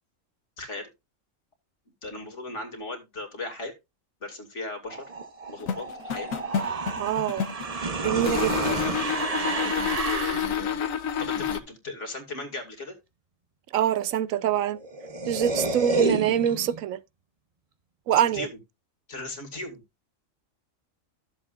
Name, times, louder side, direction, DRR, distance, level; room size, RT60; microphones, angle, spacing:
voice 1, 0.6-0.9 2.0-3.7 4.2-5.0 5.5-6.3 7.9-8.2 9.3-12.9 18.3-18.5 19.1-19.8, left 2 dB, 60° left, 2.6 m, -37 dB
sound 1, 4.9-10.6 14.5-14.6 14.8-16.8, right 3 dB, 30° right, 0.8 m, -30 dB
sound 2, 5.6-7.7 8.2-11.6, left 8 dB, 80° left, 1.2 m, -29 dB
voice 2, 7.0-7.5 8.0-8.8 13.7-14.8 15.3-17.0 18.1-18.5, right 10 dB, 85° right, 1.1 m, -25 dB
13.0 x 7.5 x 2.5 m
omnidirectional pair, 1.4 m